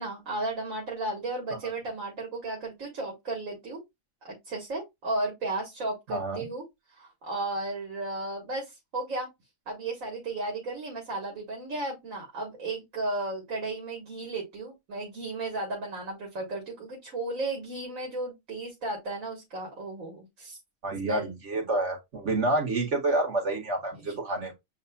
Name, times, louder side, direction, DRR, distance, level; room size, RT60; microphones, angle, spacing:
voice 1, 0.0-3.8 4.2-6.6 7.0-9.3 9.7-20.6 21.0-21.3, right 2 dB, 85° right, 1.8 m, -34 dB
voice 2, 6.1-6.5 20.8-24.5, right 2 dB, 60° right, 2.0 m, -28 dB
7.8 x 2.7 x 2.2 m
omnidirectional pair, 1.4 m